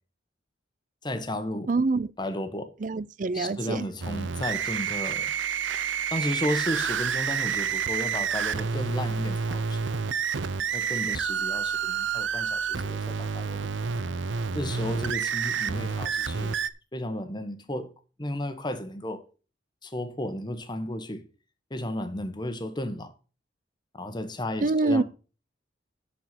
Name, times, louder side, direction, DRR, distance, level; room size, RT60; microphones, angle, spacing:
voice 1, 1.0-1.7 2.2-2.7 3.3-5.3 6.1-9.9 10.7-13.6 13.9-14.0 14.5-16.6 16.9-17.9 18.2-19.2 19.8-21.3 21.7-23.1 23.9-25.0, left 1 dB, 25° left, 1.3 m, -33 dB
voice 2, 1.7-2.1 2.8-3.9 24.6-25.0, right 3 dB, 45° right, 0.5 m, -25 dB
sound 1, 4.0-16.7, right 6 dB, 90° right, 0.7 m, -29 dB
9.4 x 6.8 x 5.8 m
head